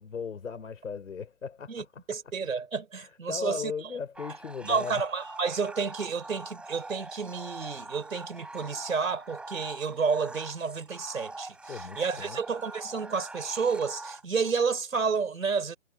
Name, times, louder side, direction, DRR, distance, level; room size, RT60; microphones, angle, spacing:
voice 1, 0.0-2.0 3.0-5.0 11.7-12.4, left 6 dB, 75° left, 4.2 m, -37 dB
voice 2, 1.7-3.7 4.6-15.8, right 5 dB, 85° right, 4.2 m, -30 dB
sound 1, 4.2-14.5, right 2 dB, 5° right, 3.7 m, -43 dB
hypercardioid pair, 155°, 39 cm